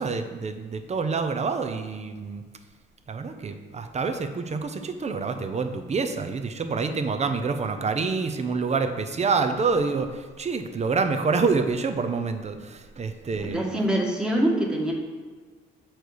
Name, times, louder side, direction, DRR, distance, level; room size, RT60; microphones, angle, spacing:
voice 1, 0.0-2.4 3.1-13.6, right 4 dB, 35° right, 7 dB, 0.7 m, -27 dB
voice 2, 13.3-14.9, right 1 dB, 5° right, -1 dB, 1.3 m, -24 dB
6.7 x 4.4 x 4.7 m, 1.4 s
cardioid pair, 90°, 20 cm